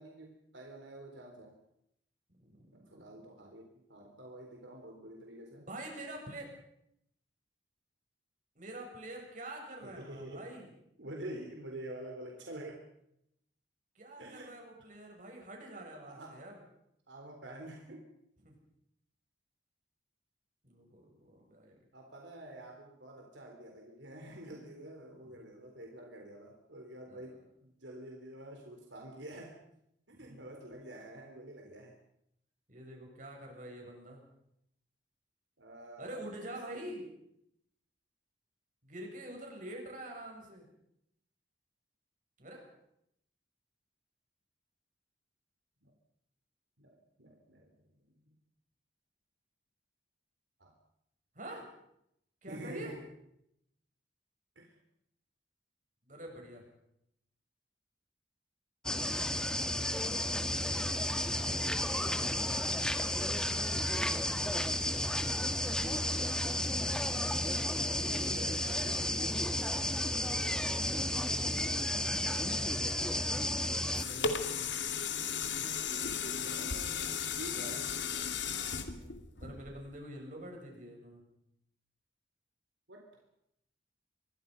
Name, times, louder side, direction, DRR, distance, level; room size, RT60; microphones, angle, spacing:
voice 1, 0.0-1.5 2.7-5.7 9.8-10.5 11.0-12.9 14.2-14.5 16.0-16.4 17.1-18.1 21.9-29.6 30.1-31.9 35.6-37.0 45.8-45.9 46.8-47.8 48.3-48.4 50.6-50.7 52.5-53.1 54.6-54.8 65.6-66.2 70.3-70.7 72.3-73.3 75.5-78.1 82.9-83.1, right 1 dB, 75° right, 1 dB, 3.9 m, -48 dB
voice 2, 5.6-6.5 8.5-10.7 13.9-16.5 18.4-18.6 20.6-21.8 25.4-25.5 27.1-27.3 30.2-30.5 32.7-34.2 36.0-37.0 38.8-40.7 42.4-42.7 51.3-51.7 52.4-53.0 56.0-56.6 67.7-69.5 71.0-72.3 73.8-74.8 78.7-81.2, right 1 dB, 45° right, 1 dB, 7.6 m, -46 dB
sound 1, 58.8-74.0, left 1 dB, 5° left, 1.4 m, -32 dB
sound 2, 73.6-80.0 80.5-80.6, left 6 dB, 75° left, 2.4 m, -35 dB
26.0 x 23.0 x 5.5 m, 0.77 s
head